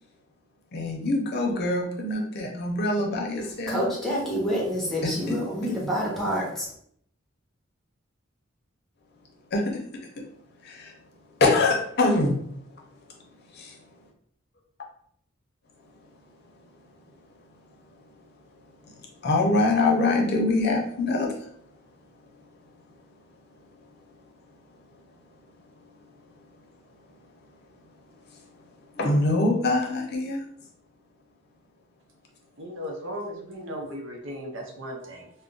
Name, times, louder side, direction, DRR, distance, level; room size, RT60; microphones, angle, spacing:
voice 1, 0.7-3.8 5.0-5.7 9.5-9.8 10.6-11.0 11.4-13.8 17.9-18.0 18.8-21.7 23.7-23.8 25.8-25.9 26.6-26.7 28.3-28.5 28.9-30.4, left 2 dB, 55° left, 1 dB, 0.6 m, -25 dB
voice 2, 3.7-6.7, equal, ahead, -4 dB, 0.9 m, -27 dB
voice 3, 32.6-35.3, equal, 70° right, 1 dB, 0.7 m, -36 dB
2.4 x 2.1 x 3.7 m, 0.66 s
head